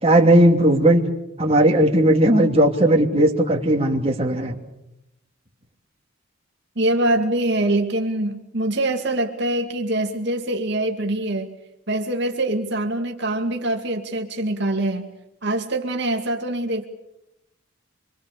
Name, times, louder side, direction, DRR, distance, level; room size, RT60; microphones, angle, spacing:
voice 1, 0.0-1.0 1.4-4.5, right 1 dB, 30° right, 1 dB, 2.9 m, -17 dB
voice 2, 6.8-11.6 11.9-15.1 15.4-16.9, right 1 dB, 60° right, 3 dB, 2.3 m, -24 dB
26.5 x 24.5 x 6.8 m, 0.87 s
head